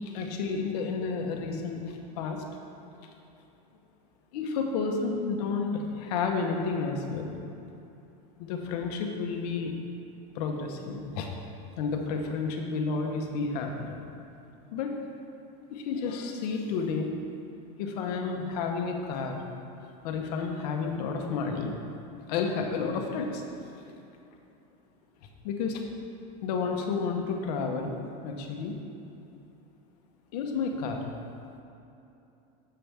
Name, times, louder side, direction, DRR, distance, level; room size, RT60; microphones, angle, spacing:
voice 1, 0.0-2.4 3.0-3.1 4.3-7.3 8.4-9.7 10.3-11.3 11.8-14.0 14.7-15.0 15.7-17.1 17.8-19.4 19.8-21.7 22.3-23.4 23.7-23.8 25.4-25.8 26.4-27.9 28.2-28.8 30.3-31.1, left 4 dB, 75° left, 2 dB, 1.0 m, -31 dB
7.6 x 6.9 x 3.4 m, 2.9 s
supercardioid pair, 150°, 21 cm